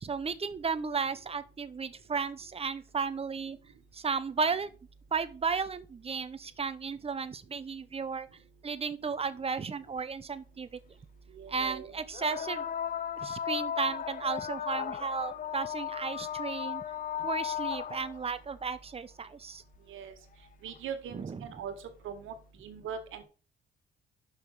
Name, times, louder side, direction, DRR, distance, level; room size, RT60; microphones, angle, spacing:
voice 1, 0.0-3.6 3.9-4.7 5.1-8.3 8.6-10.8 11.5-12.7 13.2-16.8 17.2-19.6 21.1-21.5, right 5 dB, 30° right, 13 dB, 0.9 m, -34 dB
sound 1, 10.0-10.1 12.1-18.3 19.7-19.8 20.7-20.8, left 9 dB, 45° left, 0.5 m, -35 dB
voice 2, 11.4-11.9 19.9-20.1 20.6-21.7 22.0-22.3 22.6-23.2, right 7 dB, 80° right, 8 dB, 1.7 m, -40 dB
5.9 x 5.7 x 6.5 m, 0.36 s
cardioid pair, 90°, 20 cm